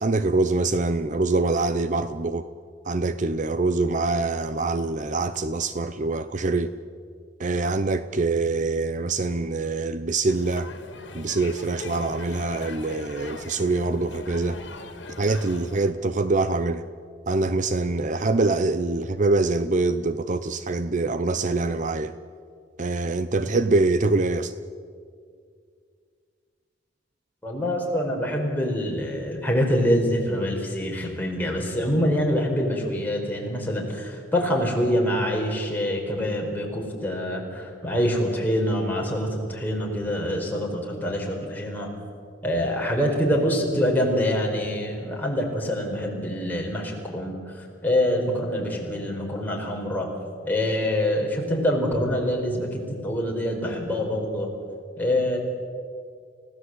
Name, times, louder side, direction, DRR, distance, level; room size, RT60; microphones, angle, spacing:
voice 1, 0.0-2.4 2.9-6.7 7.4-10.7 11.1-14.6 15.2-16.8 17.3-22.1 22.8-24.5, right 3 dB, 40° right, 12 dB, 0.7 m, -24 dB
sound 1, 10.3-15.9, left 3 dB, 80° left, 2.2 m, -41 dB
voice 2, 27.4-41.9 42.4-50.1 50.5-54.5 55.0-55.4, equal, 10° left, -1 dB, 4.8 m, -25 dB
30.0 x 17.0 x 8.0 m, 2.2 s
head